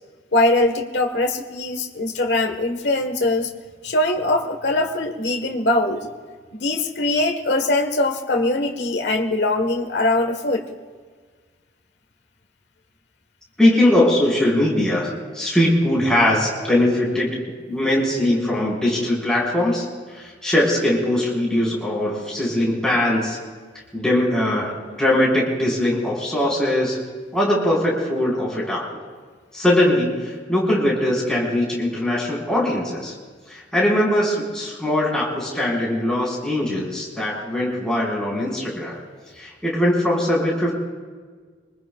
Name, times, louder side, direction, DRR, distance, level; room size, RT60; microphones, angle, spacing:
voice 1, 0.3-3.5 3.8-6.1 6.5-10.6, left 2 dB, 75° left, 4 dB, 1.5 m, -21 dB
voice 2, 13.6-17.4 17.7-19.9 20.1-23.4 23.9-27.0 27.3-29.0 29.5-33.1 33.5-39.0 39.4-40.7, left 1 dB, 5° left, -5 dB, 4.8 m, -21 dB
26.0 x 20.0 x 2.4 m, 1.5 s
head